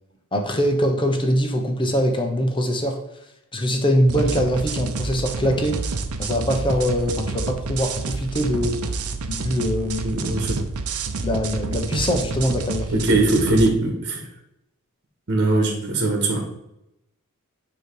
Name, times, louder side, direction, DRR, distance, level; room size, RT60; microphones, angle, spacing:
voice 1, 0.3-3.0 3.5-5.8 6.2-8.8 9.3-10.0 11.2-13.2, equal, 25° left, 3 dB, 1.1 m, -22 dB
sound 1, 4.1-13.7, right 4 dB, 85° right, 0.7 m, -29 dB
voice 2, 10.0-10.6 12.9-14.2 15.3-16.4, right 2 dB, 55° right, 1 dB, 1.9 m, -20 dB
9.6 x 3.2 x 4.9 m, 0.83 s
head